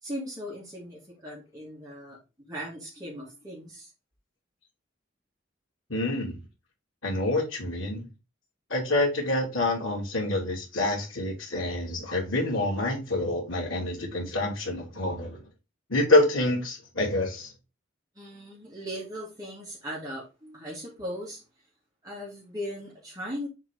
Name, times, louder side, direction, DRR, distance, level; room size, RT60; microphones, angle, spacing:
voice 1, 0.0-2.2 2.5-3.9 18.2-21.4 22.0-23.5, equal, 20° right, 2.4 m, -38 dB
voice 2, 5.9-6.4 7.0-8.0 8.7-15.4 15.9-17.5, left 2 dB, 85° left, 2.8 m, -27 dB
7.3 x 3.9 x 3.7 m
head